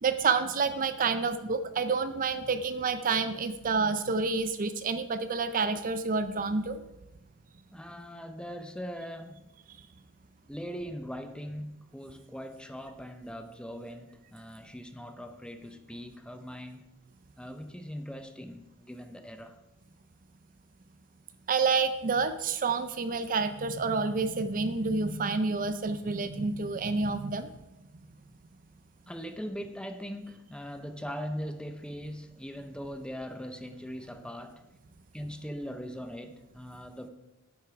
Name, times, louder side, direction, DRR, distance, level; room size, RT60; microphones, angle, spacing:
voice 1, 0.0-6.8 21.5-27.5, right 4 dB, 40° right, 11 dB, 0.5 m, -28 dB
voice 2, 7.7-9.4 10.5-16.9 17.4-19.6 29.1-34.7 35.1-37.1, equal, 5° left, 8 dB, 0.6 m, -40 dB
10.5 x 8.5 x 4.8 m, 0.94 s
head